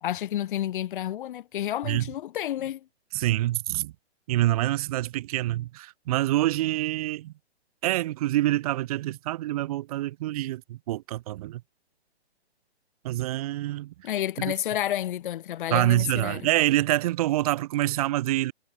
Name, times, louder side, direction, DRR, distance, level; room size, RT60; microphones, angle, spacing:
voice 1, 0.0-2.8 14.0-16.5, left 12 dB, 50° left, 1.6 m, -30 dB
voice 2, 3.1-3.9 4.3-7.3 7.8-11.6 13.0-13.9 14.4-14.5 15.7-18.5, right 15 dB, 35° right, 0.7 m, -26 dB
hypercardioid pair, 140°, 34 cm